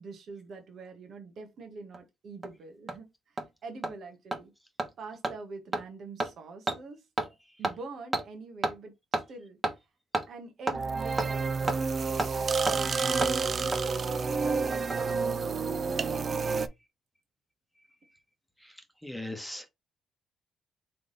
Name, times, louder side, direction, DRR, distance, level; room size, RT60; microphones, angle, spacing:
voice 1, 0.0-4.5 5.0-7.1 7.6-9.6 10.3-11.9 12.3-13.2 13.6-16.7, right 4 dB, 60° right, 1.3 m, -45 dB
Hammer, 1.9-2.0 2.4-2.5 2.9-3.0 3.4-3.5 3.8-3.9 4.3-4.4 4.8-4.9 5.2-5.3 5.7-5.8 6.2-6.3 6.7-6.8 7.2-7.3 7.6-7.7 8.1-8.2 8.6-8.7 9.1-9.2 9.6-9.7 10.1-10.3 10.7-10.8 11.2-11.3 11.7-11.8 12.2-12.3 12.7-12.8 13.2-13.3 13.7-13.8 14.7-15.1 15.4-15.5, right 2 dB, 25° right, 1.2 m, -30 dB
sound 1, 10.7-16.7, right 4 dB, 40° right, 0.5 m, -29 dB
voice 2, 19.0-19.7, left 1 dB, ahead, 1.2 m, -39 dB
3.7 x 3.3 x 3.9 m
cardioid pair, 90°, 0 cm